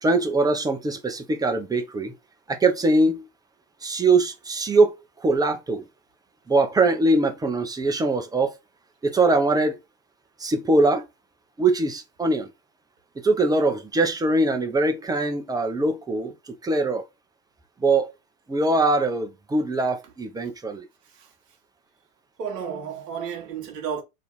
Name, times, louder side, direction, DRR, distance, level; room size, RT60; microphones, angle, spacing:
voice 1, 0.0-2.1 2.5-3.3 3.8-5.0 5.2-5.9 6.5-8.6 9.0-9.8 10.4-11.0 11.6-12.5 13.2-17.0 17.8-18.1 18.5-20.9, right 2 dB, 10° right, 0.5 m, -22 dB
voice 2, 22.4-24.0, right 7 dB, 80° right, 0.9 m, -32 dB
2.6 x 2.4 x 4.1 m
figure-of-eight pair, 70°, 47 cm